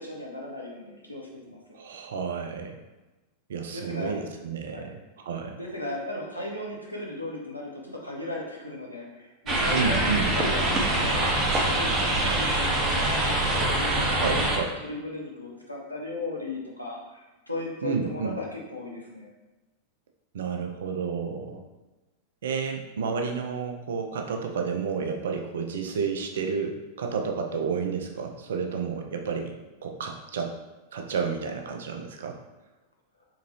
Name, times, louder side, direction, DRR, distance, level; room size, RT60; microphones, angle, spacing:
voice 1, 0.0-1.8 3.7-4.1 4.7-4.9 5.6-11.3 11.6-14.6 14.8-19.3, left 2 dB, 85° left, -3 dB, 0.9 m, -36 dB
voice 2, 1.7-2.8 3.5-5.0 5.2-5.6 9.7-10.3 13.9-14.7 17.8-18.4 20.3-21.6 22.4-29.5 29.8-30.6 30.9-32.4, right 5 dB, 60° right, 4 dB, 0.6 m, -31 dB
sound 1, 9.5-14.6, right 1 dB, 25° right, 0.9 m, -24 dB
3.8 x 3.6 x 3.1 m, 1.1 s
figure-of-eight pair, 90°, 0 cm